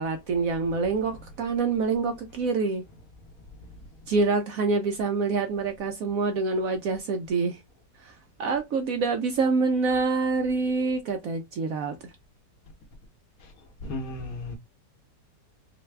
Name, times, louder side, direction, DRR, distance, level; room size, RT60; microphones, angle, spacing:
voice 1, 0.0-2.8 4.1-7.6 8.0-8.1 8.4-11.9, right 4 dB, 70° right, 0.8 m, -26 dB
voice 2, 13.8-14.6, left 2 dB, 60° left, 1.2 m, -34 dB
4.0 x 2.2 x 3.2 m
omnidirectional pair, 1.9 m